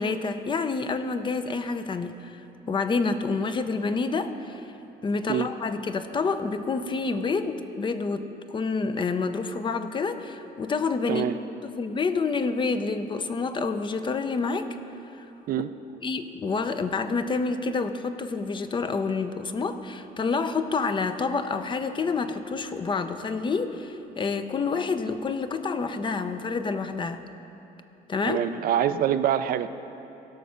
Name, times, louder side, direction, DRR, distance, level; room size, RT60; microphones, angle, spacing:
voice 1, 0.0-2.4 2.7-4.7 5.0-8.3 8.5-11.2 11.6-14.7 15.2-15.3 16.0-27.2 28.1-28.4, left 4 dB, 30° left, 10 dB, 0.6 m, -28 dB
voice 2, 11.1-11.4 15.5-15.7 28.3-29.7, right 10 dB, 60° right, 11 dB, 0.4 m, -25 dB
16.5 x 6.3 x 5.6 m, 3.0 s
cardioid pair, 110°, 17 cm